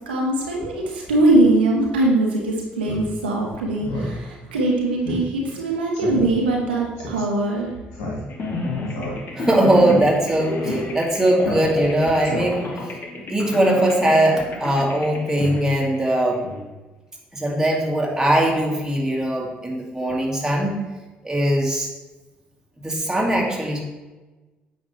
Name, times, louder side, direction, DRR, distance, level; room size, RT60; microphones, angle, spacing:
voice 1, 0.1-7.7, right 2 dB, 85° right, -1 dB, 1.1 m, -21 dB
Speech synthesizer, 2.8-3.0 3.4-3.5 3.8-4.1 4.5-4.6 5.0-5.2 5.5-5.6 5.9-6.2 7.0-7.2 7.9-8.5 8.9-9.5 9.8-10.0 10.6-10.8 11.4-11.9 12.2-12.8, left 1 dB, 70° left, 2.1 m, -30 dB
sound 1, 8.3-16.6, left 1 dB, 40° left, 1.3 m, -31 dB
voice 2, 9.4-12.9 13.3-16.4 17.3-20.7 21.2-21.9 22.8-23.8, right 1 dB, 10° right, -2 dB, 2.0 m, -20 dB
8.6 x 5.6 x 3.3 m, 1.2 s
hypercardioid pair, 50°, 5 cm